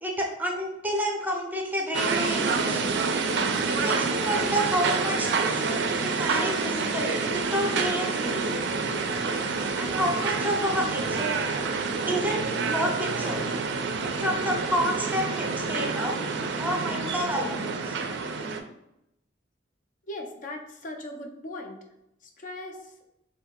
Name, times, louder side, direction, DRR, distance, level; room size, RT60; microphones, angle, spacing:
voice 1, 0.0-2.9 3.7-5.6 6.0-8.5 9.8-11.6 12.0-12.4 12.7-13.5 14.0-16.2 16.6-18.0, equal, 10° right, 0 dB, 0.5 m, -30 dB
sound 1, 1.9-18.6, right 4 dB, 65° right, 0.3 m, -28 dB
voice 2, 20.1-21.8 22.2-22.9, left 1 dB, 45° left, 3 dB, 0.4 m, -39 dB
2.7 x 2.6 x 3.6 m, 0.85 s
head